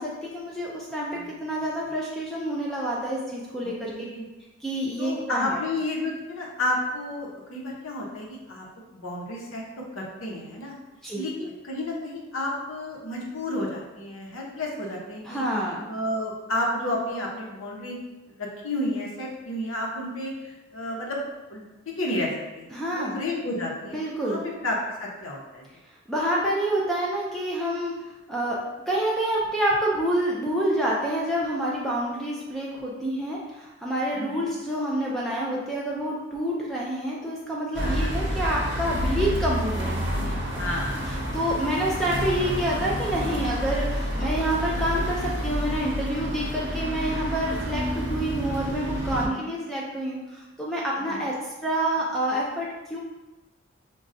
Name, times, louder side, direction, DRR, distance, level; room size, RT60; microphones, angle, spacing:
voice 1, 0.0-3.9 4.6-5.6 11.0-11.3 15.2-15.8 22.7-23.2 23.9-24.4 26.1-28.6 28.9-40.6 41.1-53.0, right 1 dB, ahead, -5 dB, 0.3 m, -28 dB
voice 2, 1.1-1.6 3.8-4.3 5.0-8.6 8.9-10.7 11.2-15.4 15.9-18.0 18.4-21.2 21.5-21.6 22.0-22.3 22.5-22.7 22.9-25.7 34.1-34.5 37.8-38.1 40.6-41.0 49.1-49.4 51.0-51.2, left 1 dB, 90° left, -2 dB, 0.8 m, -31 dB
sound 1, 37.7-49.3, equal, 60° right, 0.7 m, -29 dB
5.2 x 2.3 x 2.5 m, 1.1 s
head